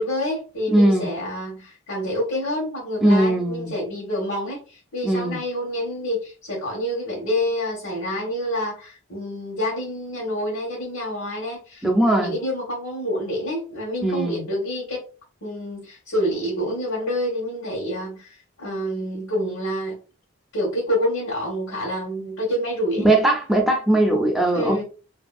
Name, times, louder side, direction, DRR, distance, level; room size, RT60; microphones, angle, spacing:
voice 1, 0.0-15.0 15.4-19.9 20.5-23.0 24.5-24.8, equal, 80° left, 1.2 m, -27 dB
voice 2, 0.7-1.1 3.0-3.7 5.0-5.4 11.8-12.3 14.0-14.4 23.0-24.8, right 1 dB, ahead, 0.5 m, -19 dB
2.7 x 2.6 x 2.3 m
head